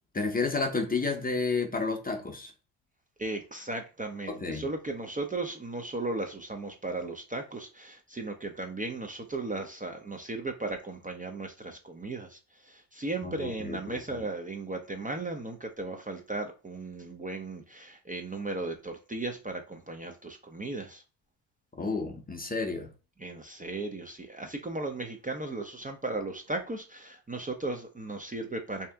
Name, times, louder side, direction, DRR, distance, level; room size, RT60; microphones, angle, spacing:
voice 1, 0.1-2.5 4.3-4.6 13.2-14.0 21.7-22.9, left 4 dB, 20° left, 0.7 m, -31 dB
voice 2, 3.2-21.0 23.2-28.9, right 2 dB, 15° right, 0.6 m, -36 dB
3.1 x 2.9 x 3.5 m
cardioid pair, 80°, 46 cm